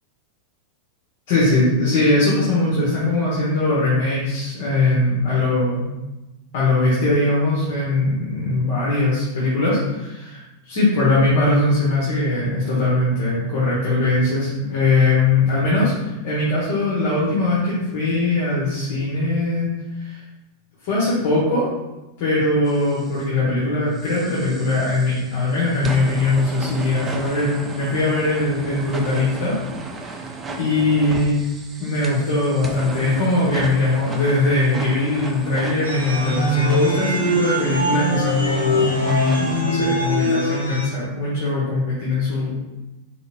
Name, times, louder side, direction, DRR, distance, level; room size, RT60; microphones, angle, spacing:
voice 1, 1.3-5.9 6.5-10.4 10.7-19.7 20.0-20.2 20.8-21.7 22.2-29.6 30.0-30.2 30.6-31.3 31.8-42.5, left 2 dB, 50° left, -8 dB, 1.1 m, -20 dB
sound 1, 22.7-23.3 23.9-39.6, right 3 dB, 20° right, 0.4 m, -35 dB
sound 2, 35.8-40.9, equal, 85° left, 0.8 m, -22 dB
3.9 x 3.6 x 2.5 m, 1.0 s
figure-of-eight pair, 90°, 0 cm